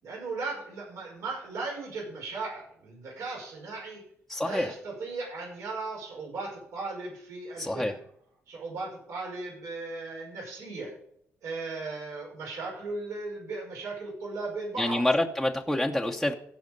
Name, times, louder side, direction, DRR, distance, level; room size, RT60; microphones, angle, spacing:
voice 1, 0.0-4.0 4.4-8.0 8.5-10.9 11.4-15.0, right 3 dB, 80° right, -3 dB, 5.4 m, -37 dB
voice 2, 4.3-4.7 7.6-7.9 14.8-16.3, left 1 dB, ahead, 1 dB, 0.8 m, -27 dB
16.0 x 6.3 x 5.3 m, 0.68 s
cardioid pair, 130°, 5 cm